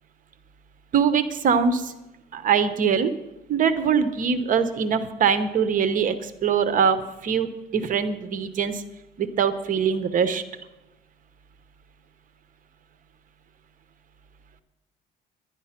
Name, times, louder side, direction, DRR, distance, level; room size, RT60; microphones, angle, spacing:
voice 1, 0.9-1.9 2.3-3.1 3.5-7.0 7.2-7.5 7.7-8.8 9.2-10.4, right 6 dB, 50° right, 11 dB, 1.0 m, -22 dB
11.0 x 11.0 x 5.9 m, 0.96 s
cardioid pair, 110°, 17 cm